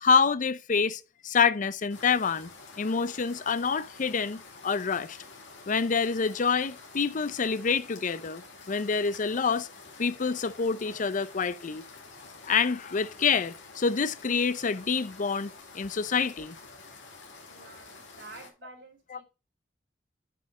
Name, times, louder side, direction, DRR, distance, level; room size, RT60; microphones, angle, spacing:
voice 1, 0.0-2.5 2.8-5.2 5.7-8.4 8.7-9.7 10.0-11.8 12.4-16.6, left 5 dB, 45° left, 0.5 m, -27 dB
sound 1, 1.9-18.5, left 3 dB, 85° left, 2.8 m, -49 dB
voice 2, 17.5-19.2, right 3 dB, 75° right, 3.1 m, -49 dB
7.6 x 5.4 x 5.4 m
head